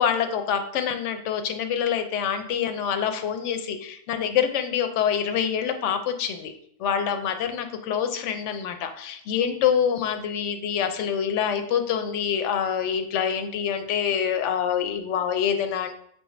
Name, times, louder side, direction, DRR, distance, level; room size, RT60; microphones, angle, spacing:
voice 1, 0.0-6.5 6.8-15.9, left 8 dB, 80° left, 7 dB, 0.9 m, -26 dB
4.8 x 3.3 x 3.1 m, 0.68 s
omnidirectional pair, 1.2 m